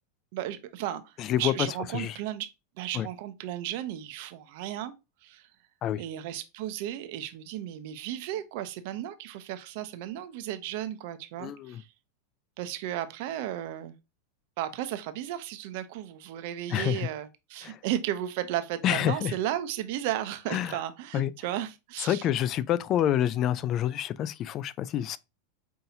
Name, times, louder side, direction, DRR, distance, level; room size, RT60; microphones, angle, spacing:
voice 1, 0.3-2.5 2.8-4.9 5.2-5.5 6.0-11.9 12.6-14.0 14.6-22.2, right 12 dB, 60° right, 0.6 m, -34 dB
voice 2, 1.2-1.7 1.9-2.1 2.9-3.1 5.8-6.0 11.4-11.8 16.7-17.1 17.6-17.8 18.8-19.3 20.5-20.8 21.1-21.3 22.0-25.2, left 11 dB, 40° left, 0.3 m, -27 dB
5.6 x 2.8 x 2.7 m
supercardioid pair, 125°, 0 cm